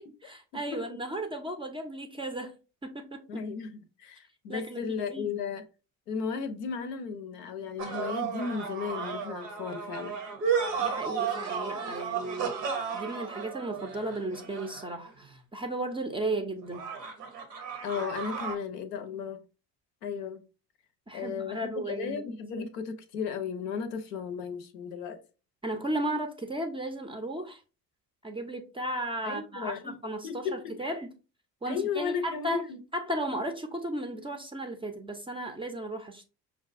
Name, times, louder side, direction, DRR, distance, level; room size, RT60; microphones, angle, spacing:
voice 1, 0.2-2.6 2.8-3.4 4.5-5.3 10.8-16.8 21.1-22.2 25.6-27.6 28.2-30.5 30.8-31.1 31.6-32.6 32.9-36.2, right 1 dB, 15° right, 0.3 m, -35 dB
voice 2, 3.3-5.6 6.1-10.2 17.8-19.4 20.0-20.4 21.1-25.2 29.2-30.0 30.2-30.9 31.7-32.8, left 6 dB, 80° left, 0.6 m, -35 dB
sound 1, 7.8-15.1 16.7-18.6, right 6 dB, 90° right, 0.7 m, -33 dB
5.4 x 2.2 x 2.4 m
hypercardioid pair, 55°, 47 cm